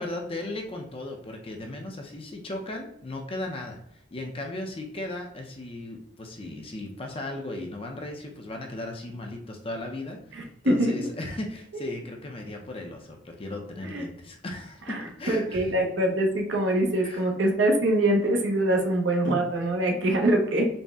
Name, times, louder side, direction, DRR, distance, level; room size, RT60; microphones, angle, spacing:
voice 1, 0.0-15.7 17.0-17.3, left 2 dB, 30° left, 2 dB, 0.6 m, -36 dB
voice 2, 10.3-11.1 13.8-14.0 14.9-15.0 15.3-20.7, right 1 dB, 70° right, 2 dB, 0.7 m, -24 dB
4.1 x 2.1 x 3.5 m, 0.73 s
head